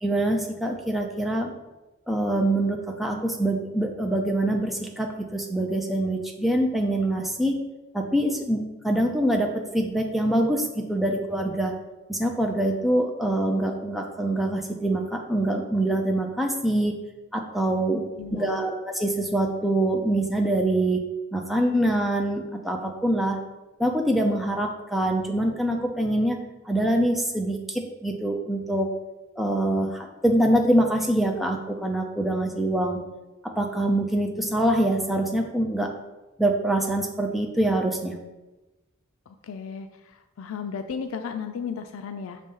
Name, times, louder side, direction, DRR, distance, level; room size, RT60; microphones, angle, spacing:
voice 1, 0.0-1.5 2.1-7.6 7.9-11.7 12.1-16.9 17.3-18.0 18.3-21.0 21.3-23.4 23.8-26.4 26.6-28.9 29.4-33.0 33.4-35.9 36.4-38.2, right 1 dB, ahead, 1 dB, 0.5 m, -24 dB
voice 2, 18.2-18.6 39.3-42.4, left 6 dB, 85° left, 8 dB, 0.4 m, -35 dB
6.7 x 3.2 x 5.4 m, 1.1 s
head